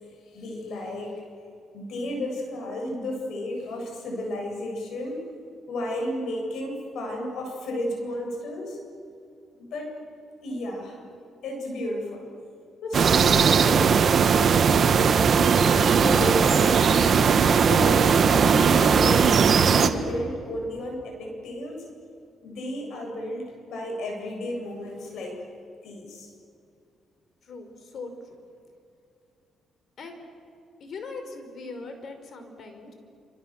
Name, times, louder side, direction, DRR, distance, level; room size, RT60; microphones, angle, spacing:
voice 1, 0.3-1.2 1.7-5.2 5.7-8.8 9.5-9.9 10.4-11.0 11.4-12.3 12.8-17.0 17.6-21.8 22.4-25.4 25.8-26.3, left 1 dB, 75° left, 2 dB, 7.8 m, -33 dB
sound 1, 12.9-19.9, right 6 dB, 50° right, 1.5 m, -19 dB
voice 2, 27.4-28.1 30.0-30.2 30.8-32.9, left 3 dB, 55° left, 6 dB, 5.1 m, -40 dB
27.5 x 27.5 x 7.6 m, 2.5 s
cardioid pair, 90°, 0 cm